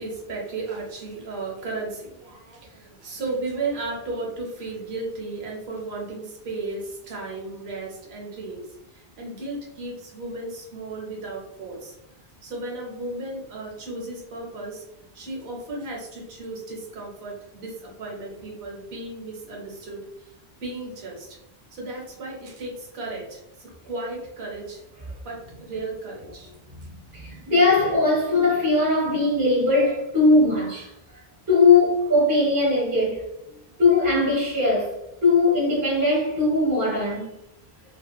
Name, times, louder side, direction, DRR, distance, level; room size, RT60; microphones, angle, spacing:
voice 1, 0.0-8.6 8.9-11.9 12.4-14.8 15.1-20.3 20.6-21.4 21.7-24.8 25.2-26.5, right 3 dB, 80° right, 0.9 m, -34 dB
voice 2, 27.1-30.9 31.5-33.2 33.8-34.9 35.2-37.3, left 3 dB, 25° right, 0.5 m, -20 dB
2.7 x 2.1 x 2.3 m
omnidirectional pair, 1.0 m